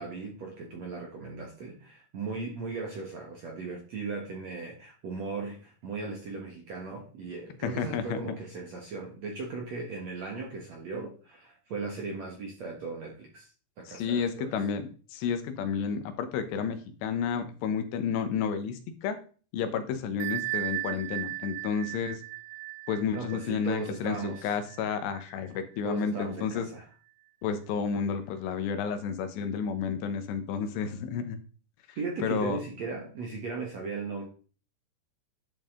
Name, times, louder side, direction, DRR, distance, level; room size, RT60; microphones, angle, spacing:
voice 1, 0.0-13.5 13.8-14.6 23.1-24.5 25.8-26.9 32.0-34.3, right 4 dB, 60° right, 0 dB, 1.9 m, -37 dB
voice 2, 7.6-8.2 13.9-19.2 19.5-22.2 22.9-26.7 27.4-31.4 32.2-32.6, left 6 dB, 80° left, 8 dB, 3.2 m, -31 dB
Bell, 20.2-25.6, right 20 dB, 85° right, 2.3 m, -37 dB
11.0 x 7.0 x 3.8 m, 0.39 s
omnidirectional pair, 5.1 m